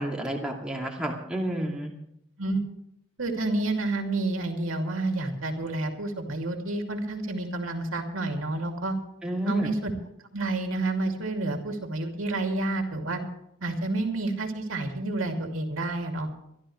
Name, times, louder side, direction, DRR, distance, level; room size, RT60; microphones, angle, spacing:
voice 1, 0.0-1.9 9.2-9.7, right 1 dB, 5° right, -2 dB, 2.4 m, -30 dB
voice 2, 3.2-8.9 9.5-9.9 10.3-13.2 13.6-16.3, right 2 dB, 80° right, 3 dB, 2.7 m, -29 dB
24.5 x 12.5 x 3.2 m, 0.77 s
head